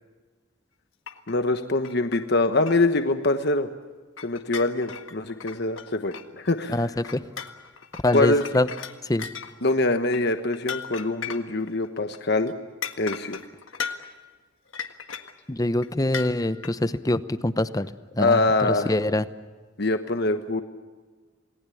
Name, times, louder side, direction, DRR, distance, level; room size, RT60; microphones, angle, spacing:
sound 1, 1.1-1.3 1.6-2.3 2.6-2.9 3.2-3.3 4.2-6.5 7.0-11.9 12.1-12.2 12.5-12.6 12.8-14.2 14.7-15.4 15.8-15.9 16.1-16.7, left 7 dB, 85° left, 1.7 m, -37 dB
voice 1, 1.3-3.7 4.2-6.8 8.1-8.4 9.6-12.5 13.0-13.4 18.2-18.9 19.8-20.6, left 2 dB, 60° left, 8 dB, 1.2 m, -24 dB
voice 2, 6.7-7.2 8.0-8.7 9.1-9.3 15.5-17.9 18.2-19.2, left 1 dB, 20° left, 13 dB, 0.8 m, -24 dB
28.5 x 19.5 x 8.5 m, 1.4 s
head